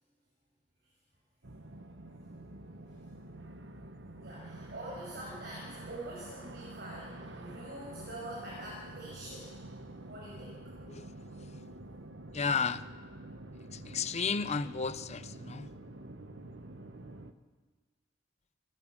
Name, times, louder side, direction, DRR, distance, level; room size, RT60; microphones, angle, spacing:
sound 1, 1.4-17.3, right 2 dB, 75° right, 1.3 m, -47 dB
voice 1, 4.2-9.5 10.1-10.5, right 1 dB, 60° right, 6.2 m, -45 dB
voice 2, 12.3-12.8 13.9-15.7, left 5 dB, 35° left, 0.7 m, -32 dB
28.5 x 13.5 x 7.5 m
head